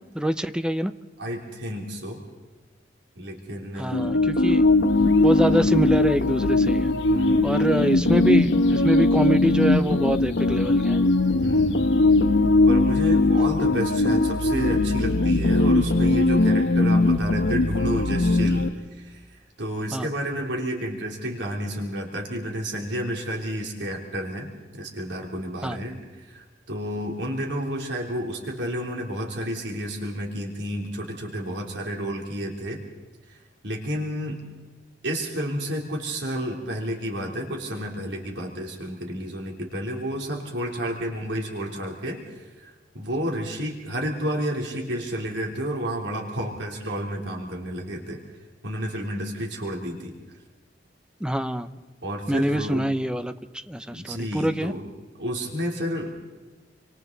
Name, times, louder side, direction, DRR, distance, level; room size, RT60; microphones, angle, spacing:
voice 1, 0.1-0.9 3.8-4.6 5.2-6.9 7.4-11.0 19.9-20.1 25.6-25.8 51.2-51.8 52.3-53.3 53.7-54.7, equal, 5° right, 10 dB, 0.7 m, -25 dB
voice 2, 1.2-2.2 3.2-4.4 5.5-5.7 7.1-8.2 11.4-12.0 12.7-19.2 19.6-32.8 33.3-33.4 33.6-34.4 35.0-48.2 48.6-50.1 52.0-52.9 53.9-54.9 55.2-56.3, equal, 75° right, 0 dB, 3.5 m, -31 dB
sound 1, 3.9-18.7, left 2 dB, 80° left, 1.0 m, -20 dB
28.0 x 26.0 x 4.1 m, 1.3 s
head